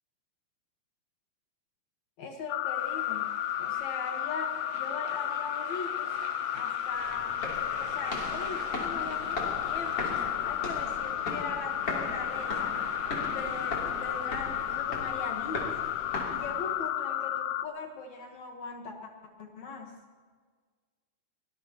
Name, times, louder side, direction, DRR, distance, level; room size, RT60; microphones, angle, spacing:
voice 1, 2.2-3.3 3.6-6.2 6.5-7.4 7.8-10.1 10.4-12.8 13.2-15.8 16.3-19.1 19.4-20.0, left 3 dB, 60° left, 3 dB, 2.3 m, -40 dB
sound 1, 2.5-17.7, left 13 dB, 80° left, 1.9 m, -33 dB
sound 2, 2.8-14.8, right 8 dB, 70° right, 1.6 m, -47 dB
sound 3, 6.9-16.9, left 2 dB, 40° left, 3.7 m, -39 dB
23.5 x 20.0 x 2.9 m, 1.6 s
omnidirectional pair, 4.0 m